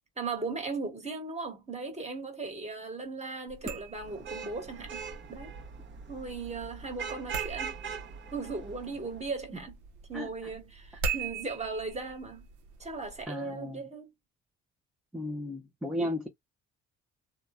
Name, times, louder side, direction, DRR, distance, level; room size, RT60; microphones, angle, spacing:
voice 1, 0.2-5.0 5.3-5.5 6.1-7.8 8.3-9.7 10.1-12.5 12.8-14.1, right 4 dB, 20° right, 1.2 m, -37 dB
sound 1, 3.5-13.3, right 5 dB, 85° right, 0.7 m, -41 dB
Vehicle horn car horn honking / Traffic noise roadway noise, 4.0-9.3, right 6 dB, 40° right, 0.8 m, -42 dB
voice 2, 10.1-10.5 13.3-13.8 15.1-16.3, left 1 dB, ahead, 0.5 m, -35 dB
2.8 x 2.2 x 2.3 m
cardioid pair, 90°, 30 cm